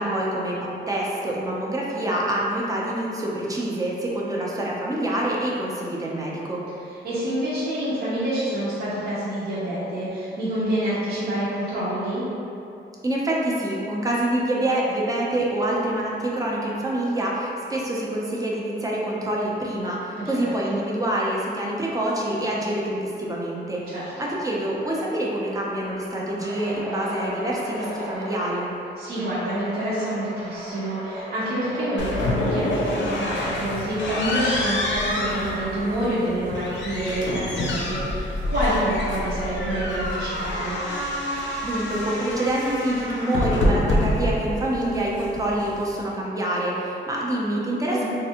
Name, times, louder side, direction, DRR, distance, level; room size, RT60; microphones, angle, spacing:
voice 1, 0.0-6.6 13.0-23.9 24.2-28.7 41.6-48.0, right 1 dB, 20° right, -4 dB, 0.5 m, -26 dB
voice 2, 7.0-12.2 20.2-20.8 23.9-24.1 29.0-40.8 47.9-48.0, right 1 dB, 55° right, -10 dB, 0.7 m, -27 dB
sound 1, 25.5-28.7 29.1-32.3 33.7-34.1 35.2-36.1, right 1 dB, 85° right, 0.8 m, -37 dB
sound 2, 32.0-46.0, left 1 dB, 70° left, 0.5 m, -27 dB
3.3 x 2.5 x 2.8 m, 2.7 s
cardioid pair, 115°, 20 cm